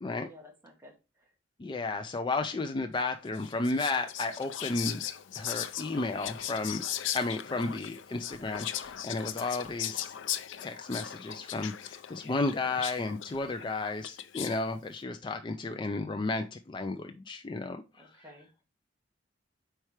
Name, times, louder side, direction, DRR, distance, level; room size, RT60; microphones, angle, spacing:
voice 1, 0.2-1.3 18.0-18.5, left 1 dB, 15° right, 0 dB, 1.2 m, -54 dB
voice 2, 1.6-5.0 5.3-6.8 7.1-10.1 10.6-18.1, left 3 dB, 25° left, 6 dB, 0.4 m, -33 dB
Whispering, 3.3-14.7, left 11 dB, 85° left, 0.5 m, -38 dB
4.6 x 4.5 x 4.7 m, 0.28 s
head